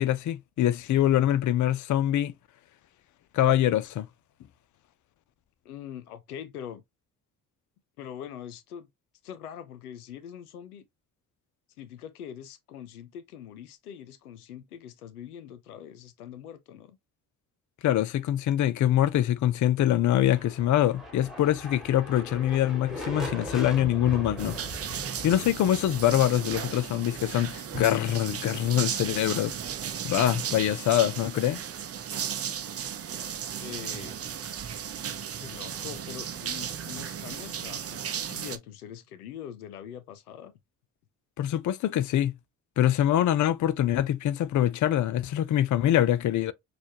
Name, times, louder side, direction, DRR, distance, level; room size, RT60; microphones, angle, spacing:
voice 1, 0.0-2.3 3.3-4.1 17.8-24.6 25.2-29.5 30.0-31.6 41.4-42.4 42.8-46.5, left 12 dB, 45° left, 0.6 m, -24 dB
voice 2, 5.6-6.8 8.0-8.9 9.2-10.9 11.8-17.0 33.6-34.2 35.4-40.5, left 9 dB, 85° left, 0.6 m, -43 dB
sound 1, 20.0-27.8, left 1 dB, ahead, 2.1 m, -40 dB
sound 2, 24.4-38.6, right 8 dB, 35° right, 0.7 m, -35 dB
6.3 x 2.4 x 2.9 m
figure-of-eight pair, 40°, 44 cm